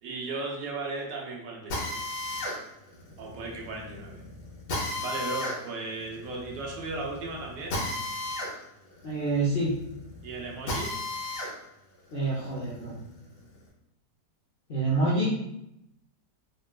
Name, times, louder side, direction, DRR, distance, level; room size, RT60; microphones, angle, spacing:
voice 1, 0.0-2.1 3.2-4.2 5.0-7.8 10.2-10.9, right 3 dB, 90° right, -1 dB, 1.4 m, -36 dB
Drill, 1.7-11.5 12.0-13.6, left 2 dB, 85° left, 1.5 m, -35 dB
voice 2, 9.0-9.8 12.1-12.9 14.7-15.3, right 2 dB, 60° left, -8 dB, 0.6 m, -27 dB
4.1 x 2.2 x 2.2 m, 0.80 s
omnidirectional pair, 1.9 m